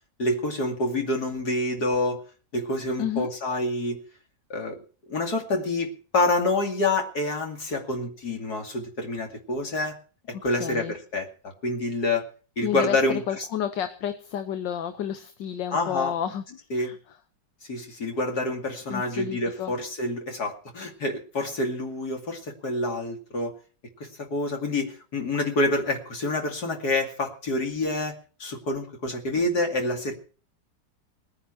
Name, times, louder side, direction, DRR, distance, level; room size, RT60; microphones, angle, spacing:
voice 1, 0.2-2.2 2.5-4.0 4.5-4.8 5.1-10.0 10.4-12.3 12.6-13.5 15.7-16.1 16.7-16.9 17.7-23.5 24.0-28.1 28.4-30.1, left 2 dB, 60° left, 3 dB, 2.9 m, -27 dB
voice 2, 3.0-3.3 10.6-11.0 12.6-17.0 18.9-19.7, left 9 dB, 80° left, 9 dB, 1.7 m, -31 dB
19.0 x 9.9 x 6.1 m, 0.39 s
omnidirectional pair, 1.9 m